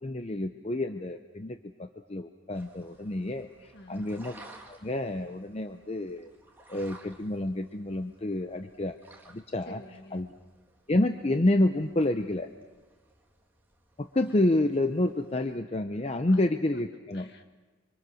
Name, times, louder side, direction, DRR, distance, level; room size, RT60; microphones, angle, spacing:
voice 1, 0.0-4.4 4.7-6.3 6.7-9.0 9.3-9.8 10.1-10.3 10.9-12.5 14.0-17.2, left 1 dB, 30° left, 7 dB, 0.7 m, -29 dB
sound 1, 2.5-15.6, right 2 dB, 10° right, 2.4 m, -56 dB
voice 2, 3.7-4.1 9.7-10.3 16.3-16.4 16.7-16.8 17.1-17.4, left 1 dB, 55° left, 5 dB, 1.9 m, -48 dB
26.5 x 25.0 x 6.3 m, 1.3 s
head